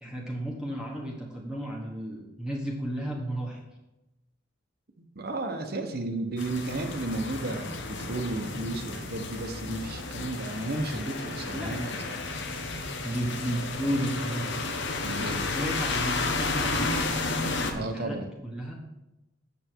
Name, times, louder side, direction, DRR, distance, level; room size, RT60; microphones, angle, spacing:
voice 1, 0.0-3.6 11.5-12.4 12.7-14.6 15.5-17.0 17.7-18.2 18.4-18.7, right 1 dB, 5° right, -3 dB, 1.2 m, -33 dB
voice 2, 5.1-12.0 15.0-15.5 17.6-18.3, right 2 dB, 55° right, 6 dB, 1.0 m, -33 dB
sound 1, 6.4-17.7, left 3 dB, 65° left, 1.0 m, -32 dB
8.0 x 6.9 x 4.5 m, 0.97 s
head